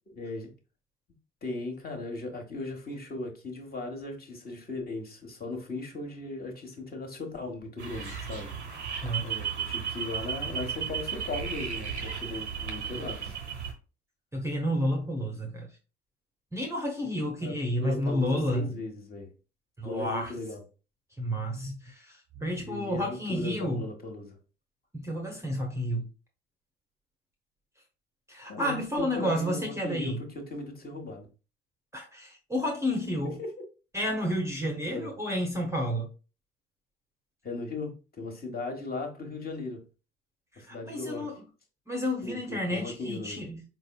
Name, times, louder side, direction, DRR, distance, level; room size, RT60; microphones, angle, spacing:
voice 1, 0.2-0.5 1.4-8.5 9.2-13.3 17.4-19.3 19.8-20.6 22.6-24.4 28.5-31.3 33.4-33.5 34.9-35.1 37.4-39.8 40.6-41.3 42.2-43.5, left 2 dB, 25° left, 1.3 m, -37 dB
sound 1, 7.8-13.7, right 7 dB, 85° right, 0.9 m, -35 dB
voice 2, 14.3-15.7 16.5-18.8 19.8-20.3 21.2-23.8 24.9-26.0 28.3-30.2 31.9-33.4 33.9-36.1 40.5-41.3 41.9-43.6, equal, 10° right, 0.9 m, -31 dB
4.4 x 4.0 x 2.3 m
figure-of-eight pair, 55°, 34 cm